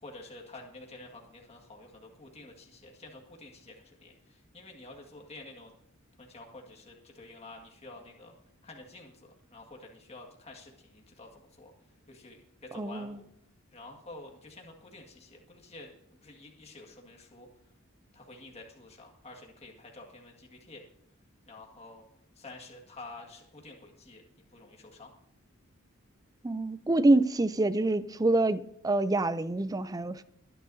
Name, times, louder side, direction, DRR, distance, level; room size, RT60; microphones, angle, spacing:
voice 1, 0.0-5.7 6.2-8.3 8.6-11.7 12.1-13.3 13.7-15.9 16.2-17.5 18.1-20.8 21.5-22.0 22.4-24.2 24.5-25.1, left 2 dB, 30° left, 1.9 m, -49 dB
voice 2, 12.7-13.2 26.4-30.2, right 2 dB, 15° right, 0.4 m, -26 dB
22.5 x 10.0 x 2.7 m
head